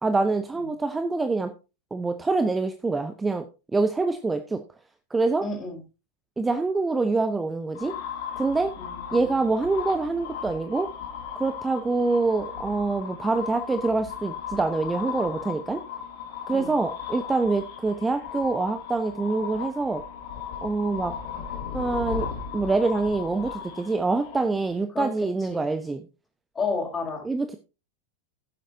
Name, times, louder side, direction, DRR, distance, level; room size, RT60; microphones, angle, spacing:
voice 1, 0.0-1.5 1.9-3.4 3.7-4.6 5.1-5.4 6.4-7.9 8.4-8.7 9.1-10.9 11.4-15.8 16.5-20.0 20.6-21.2 21.7-22.3 22.5-26.0 27.2-27.6, right 3 dB, 10° right, 9 dB, 0.8 m, -25 dB
voice 2, 5.4-5.8 8.8-9.5 16.5-16.7 24.9-25.1 25.5-25.6 26.5-27.2, left 4 dB, 20° left, -1 dB, 4.2 m, -31 dB
sound 1, 7.8-24.8, left 7 dB, 50° left, 2.6 m, -36 dB
16.0 x 7.5 x 2.8 m, 0.30 s
figure-of-eight pair, 90°, 0 cm